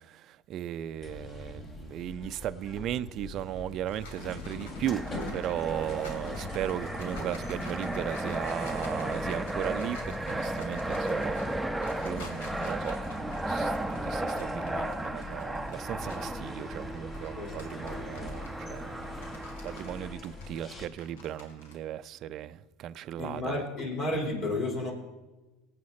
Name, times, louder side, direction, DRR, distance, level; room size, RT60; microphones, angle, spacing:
voice 1, 0.0-13.7 14.0-23.6, right 11 dB, 50° right, 0.5 m, -37 dB
sound 1, 1.0-20.9, left 2 dB, 35° left, 2.8 m, -43 dB
sound 2, 3.5-16.4 16.8-21.7, left 2 dB, 90° left, 2.8 m, -50 dB
Fixed-wing aircraft airplane, 4.9-20.1, right 1 dB, 5° right, 0.8 m, -35 dB
voice 2, 23.2-24.9, left 2 dB, 55° left, 4.9 m, -32 dB
18.5 x 8.8 x 4.3 m
supercardioid pair, 100°, 0 cm